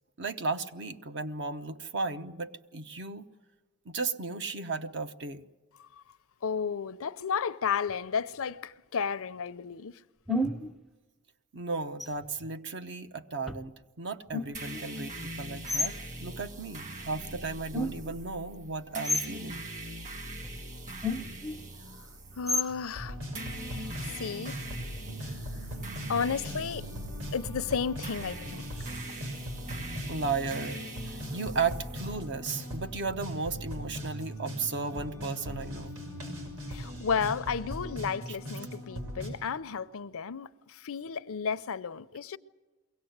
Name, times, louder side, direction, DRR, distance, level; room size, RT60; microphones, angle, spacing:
voice 1, 0.2-3.3 3.9-5.4 11.5-16.0 16.2-19.6 30.1-30.8 31.1-35.9 38.3-38.4, right 4 dB, 55° right, 0.9 m, -35 dB
voice 2, 6.4-9.9 21.9-22.1 22.4-23.2 23.7-24.6 25.2-25.3 26.1-26.9 27.3-28.6 36.7-42.4, left 6 dB, 65° left, 0.6 m, -33 dB
sound 1, 7.9-8.0 10.3-10.7 12.0-12.5 13.5-13.7 14.3-14.8 15.7-15.9 17.7-18.2 19.0-19.4 20.4-20.6 21.0-21.6 22.5-22.8, left 2 dB, ahead, 0.7 m, -31 dB
sound 2, 14.5-32.2, right 1 dB, 35° right, 1.6 m, -42 dB
sound 3, 22.9-39.3, equal, 85° right, 5.9 m, -39 dB
23.0 x 17.5 x 8.0 m
head